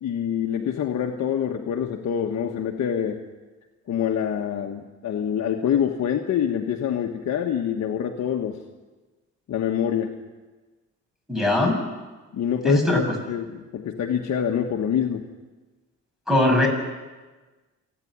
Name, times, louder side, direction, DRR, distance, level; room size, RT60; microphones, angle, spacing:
voice 1, 0.0-3.2 3.9-8.6 9.5-10.1 12.3-13.0 13.3-15.2, left 8 dB, 65° left, 2 dB, 1.4 m, -25 dB
voice 2, 11.3-11.8 12.6-13.0 16.3-16.7, left 1 dB, ahead, 1 dB, 7.1 m, -20 dB
28.5 x 10.0 x 9.8 m, 1.3 s
cardioid pair, 90°, 30 cm